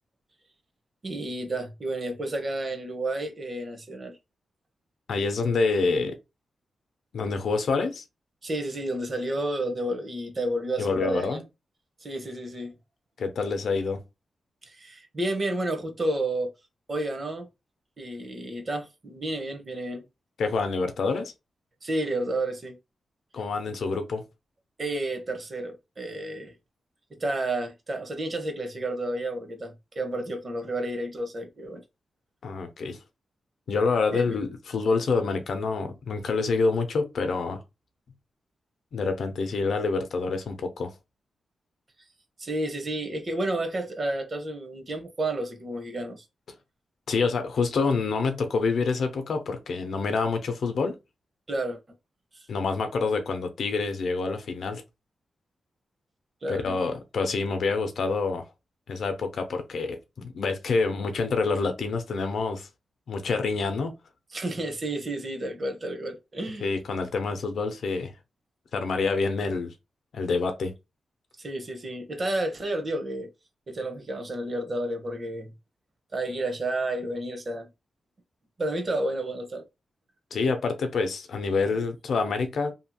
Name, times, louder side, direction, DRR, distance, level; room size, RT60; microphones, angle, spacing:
voice 1, 1.0-4.2 8.4-11.4 12.0-12.7 14.7-16.5 16.9-17.5 18.0-20.0 21.8-22.7 24.8-26.5 27.2-31.8 34.1-34.4 42.4-46.2 51.5-51.8 56.4-56.8 64.3-66.7 71.4-73.3 73.7-75.5 76.1-77.7 78.6-79.6, right 1 dB, 45° right, 0.8 m, -31 dB
voice 2, 5.1-6.2 7.1-8.0 10.8-11.4 13.2-14.0 20.4-21.3 23.3-24.2 32.4-33.0 33.7-37.6 38.9-40.9 47.1-51.0 52.5-54.8 56.5-58.5 58.9-62.7 63.1-64.0 66.6-68.1 68.7-69.7 70.1-70.7 80.3-82.7, left 4 dB, 75° left, 0.5 m, -27 dB
2.8 x 2.7 x 2.2 m
cardioid pair, 60°, 0 cm